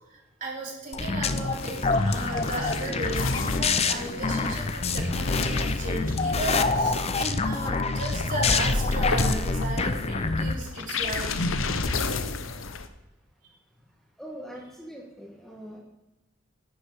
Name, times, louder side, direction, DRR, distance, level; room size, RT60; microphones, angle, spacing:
voice 1, 0.1-11.4, right 2 dB, 40° right, -2 dB, 3.4 m, -35 dB
sound 1, 0.9-10.5, left 3 dB, 30° left, 0.7 m, -27 dB
sound 2, 1.3-12.9, left 3 dB, 80° left, 0.9 m, -32 dB
voice 2, 14.2-15.8, equal, ahead, -3 dB, 1.7 m, -42 dB
11.0 x 9.8 x 5.0 m, 0.91 s
head